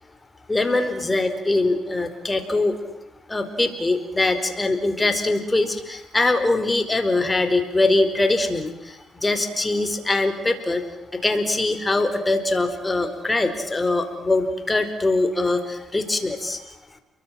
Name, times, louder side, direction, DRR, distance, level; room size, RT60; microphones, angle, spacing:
voice 1, 0.5-2.7 3.3-9.0 9.2-10.8 11.2-16.6, left 2 dB, 20° left, 8 dB, 4.7 m, -22 dB
29.5 x 23.5 x 7.7 m, 0.87 s
cardioid pair, 90°, 0 cm